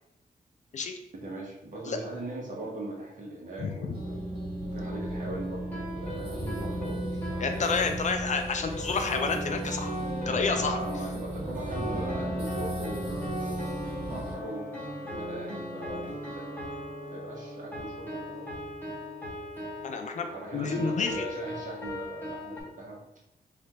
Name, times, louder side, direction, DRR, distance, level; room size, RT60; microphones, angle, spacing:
voice 1, 1.2-4.2 4.7-7.9 10.5-14.8 15.1-16.5 17.1-18.5 20.2-23.0, right 2 dB, 55° right, -3 dB, 1.1 m, -40 dB
voice 2, 3.6-3.9 7.4-9.9 10.3-10.8 19.8-21.2, left 5 dB, 50° left, 5 dB, 0.4 m, -29 dB
sound 1, 3.9-14.3, right 1 dB, 35° right, 1.5 m, -35 dB
sound 2, 4.9-22.6, equal, 10° left, 1.1 m, -40 dB
sound 3, 9.3-19.9, equal, 10° right, 1.3 m, -41 dB
3.2 x 2.5 x 4.1 m, 0.84 s
wide cardioid pair, 155°, 16 cm